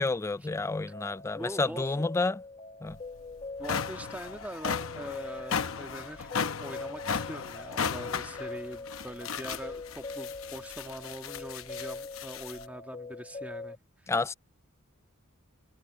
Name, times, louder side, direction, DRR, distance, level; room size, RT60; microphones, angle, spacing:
voice 1, 0.0-2.4 2.8-3.0 14.1-14.3, left 3 dB, 15° left, 0.3 m, -30 dB
sound 1, 0.5-13.7, left 3 dB, 30° left, 1.1 m, -43 dB
voice 2, 1.3-1.8 3.6-6.3 6.6-13.8, right 1 dB, 5° right, 1.7 m, -42 dB
sound 2, 2.9-3.0 3.4-12.6, left 6 dB, 70° left, 0.8 m, -36 dB
head